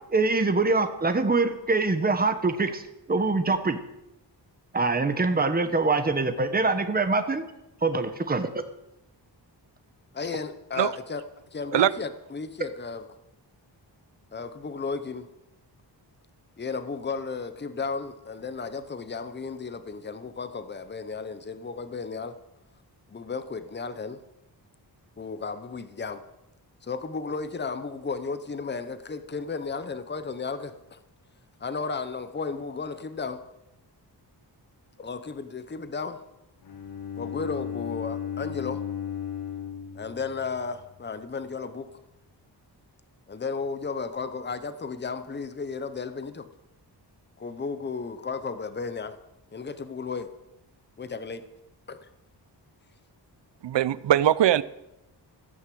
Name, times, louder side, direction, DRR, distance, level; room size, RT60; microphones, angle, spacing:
voice 1, 0.1-2.8 3.1-3.8 4.7-7.4 7.8-8.5, right 3 dB, 20° right, 1.0 m, -24 dB
voice 2, 10.1-11.2 11.5-13.0 14.3-15.3 16.6-22.4 23.1-24.2 25.2-26.2 26.8-31.0 31.6-33.4 35.0-36.2 37.2-38.8 39.9-41.9 43.3-46.5 47.4-49.2 49.5-50.3 51.0-51.4 51.9-52.0, left 4 dB, 25° left, 0.9 m, -34 dB
Bowed string instrument, 36.6-40.7, left 9 dB, 60° left, 1.1 m, -35 dB
voice 3, 53.6-54.6, right 11 dB, 85° right, 0.7 m, -21 dB
15.0 x 9.5 x 7.7 m
wide cardioid pair, 180°, 43 cm